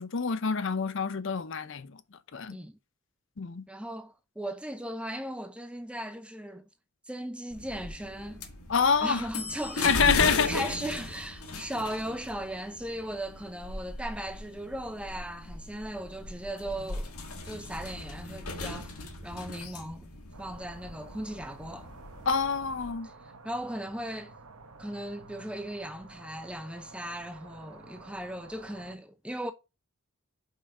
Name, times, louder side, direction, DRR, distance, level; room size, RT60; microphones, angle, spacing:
voice 1, 0.0-2.0 2.3-2.6 3.4-3.6 8.7-9.2 9.8-10.5 22.3-23.1, left 6 dB, 55° left, 0.6 m, -26 dB
voice 2, 3.7-6.6 7.1-8.5 9.0-17.1 17.4-18.9 19.2-20.1 20.4-21.9 23.0-24.3 24.8-29.5, right 1 dB, 5° right, 0.5 m, -37 dB
sound 1, 7.5-22.9, left 2 dB, 90° left, 1.8 m, -37 dB
sound 2, 20.3-29.0, right 3 dB, 80° right, 1.0 m, -51 dB
5.6 x 5.1 x 4.5 m
head